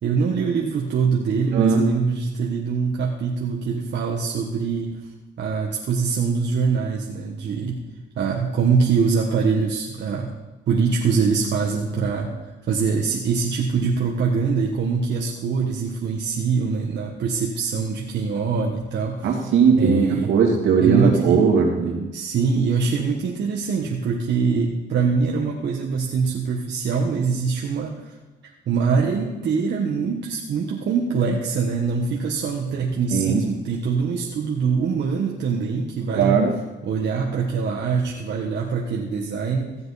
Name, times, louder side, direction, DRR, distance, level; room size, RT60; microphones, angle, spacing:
voice 1, 0.0-5.0 5.4-7.8 8.1-10.3 10.7-12.3 12.7-19.4 19.8-20.3 20.8-21.4 22.1-28.1 28.7-36.4 36.8-39.8, right 5 dB, 60° right, -2 dB, 1.4 m, -23 dB
voice 2, 1.5-1.8 19.2-22.1 33.1-33.5 36.1-36.5, right 6 dB, 80° right, -1 dB, 2.6 m, -19 dB
15.0 x 7.8 x 4.1 m, 1.1 s
cardioid pair, 90°, 20 cm